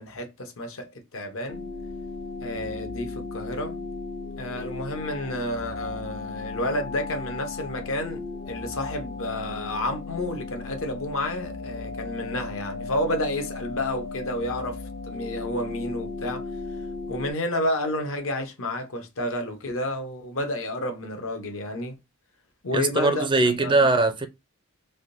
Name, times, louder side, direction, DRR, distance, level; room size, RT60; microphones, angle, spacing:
voice 1, 0.0-1.6 2.4-3.8 4.4-14.8 15.1-16.4 17.1-21.9 22.6-23.3 23.6-23.7, left 1 dB, 65° left, 0.9 m, -30 dB
sound 1, 1.5-17.3, left 3 dB, 45° left, 0.5 m, -36 dB
voice 2, 22.7-24.3, right 3 dB, 20° right, 0.4 m, -21 dB
3.5 x 2.6 x 2.6 m
head